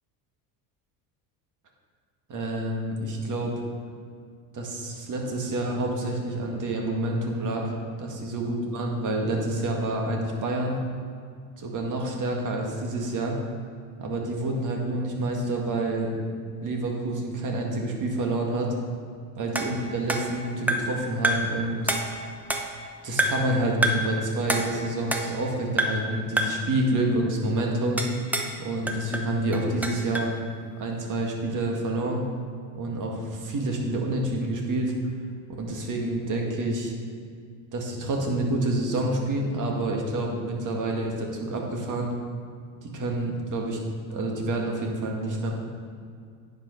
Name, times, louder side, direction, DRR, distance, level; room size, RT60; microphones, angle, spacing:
voice 1, 2.3-3.5 4.5-7.7 8.0-10.8 11.6-13.4 14.0-16.2 16.6-18.7 19.4-21.8 23.0-28.0 28.6-30.3 30.8-32.2 32.7-34.9 35.6-36.9 37.7-42.1 42.8-43.8 44.1-45.5, right 1 dB, 40° right, 0 dB, 2.0 m, -28 dB
sound 1, 19.6-21.0 21.2-21.6 21.9-22.9 23.2-23.5 23.8-24.1 24.5-25.5 25.8-26.1 26.4-26.7 28.0-28.6 28.9-30.3, right 1 dB, 5° right, 0.8 m, -28 dB
9.8 x 5.3 x 5.4 m, 2.2 s
supercardioid pair, 100°, 46 cm